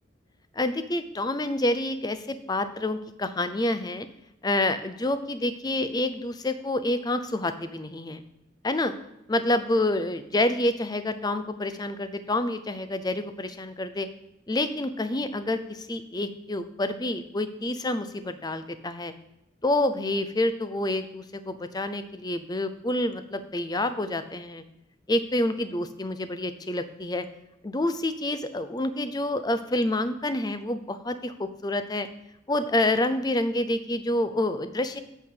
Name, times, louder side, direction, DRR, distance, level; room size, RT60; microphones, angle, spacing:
voice 1, 0.6-4.1 4.4-8.2 8.6-8.9 9.3-14.1 14.5-19.1 19.6-24.6 25.1-27.2 27.6-32.1 32.5-35.0, left 1 dB, 20° left, 11 dB, 0.5 m, -28 dB
8.5 x 5.7 x 6.5 m, 0.83 s
head